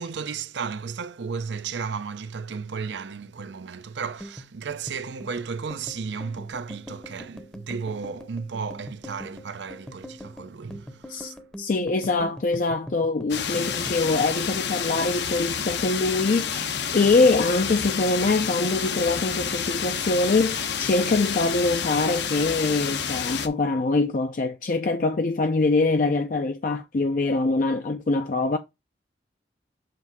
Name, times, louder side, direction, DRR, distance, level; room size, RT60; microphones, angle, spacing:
voice 1, 0.0-11.4, right 5 dB, 75° right, 0.6 m, -34 dB
sound 1, 4.0-16.6 16.9-17.9 18.2-18.6 18.9-19.6, equal, 5° left, 0.7 m, -43 dB
voice 2, 11.1-28.6, left 3 dB, 45° left, 0.4 m, -24 dB
sound 2, 13.3-23.5, left 7 dB, 70° left, 0.8 m, -29 dB
7.6 x 2.7 x 5.9 m
head